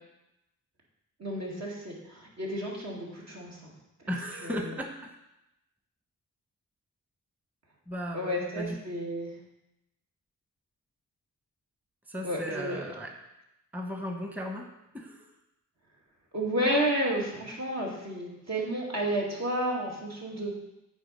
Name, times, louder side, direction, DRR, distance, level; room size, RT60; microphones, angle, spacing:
voice 1, 1.2-3.7 4.4-4.7 8.1-9.3 12.2-12.9 16.3-20.5, right 1 dB, 60° right, -3 dB, 2.4 m, -31 dB
voice 2, 4.1-5.2 7.9-8.8 12.1-13.1 13.7-14.7 14.9-15.3, equal, 5° right, 3 dB, 1.0 m, -36 dB
8.6 x 4.6 x 5.4 m, 0.91 s
cardioid pair, 75°, 31 cm